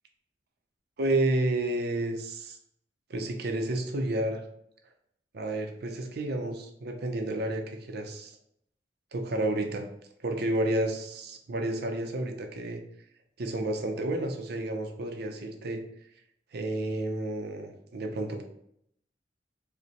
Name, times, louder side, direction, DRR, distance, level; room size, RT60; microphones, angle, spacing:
voice 1, 1.0-2.6 3.1-4.4 5.3-8.4 9.1-9.9 10.2-12.8 13.4-15.8 16.5-18.4, right 1 dB, 60° right, 4 dB, 0.5 m, -31 dB
5.0 x 2.1 x 2.8 m, 0.73 s
head